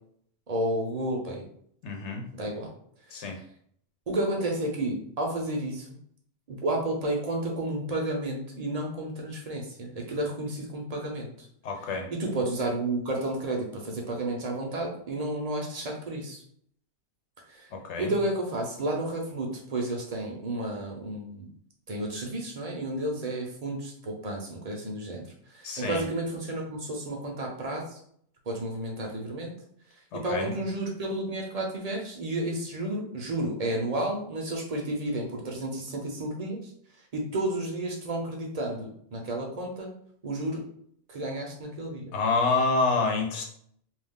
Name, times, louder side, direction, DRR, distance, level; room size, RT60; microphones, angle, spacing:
voice 1, 0.5-1.4 2.3-2.7 3.2-3.3 4.1-5.9 6.5-11.5 12.1-16.4 17.5-17.7 18.0-21.5 21.9-25.3 25.5-28.0 28.5-29.5 30.1-36.7 37.1-39.9 40.2-40.6 41.1-42.0, right 1 dB, 45° right, 0 dB, 0.5 m, -31 dB
voice 2, 1.8-2.2 3.1-3.4 11.6-12.1 17.7-18.1 25.6-26.1 30.1-30.5 42.1-43.4, left 3 dB, 80° left, 2 dB, 1.0 m, -27 dB
2.4 x 2.3 x 3.5 m, 0.64 s
omnidirectional pair, 1.2 m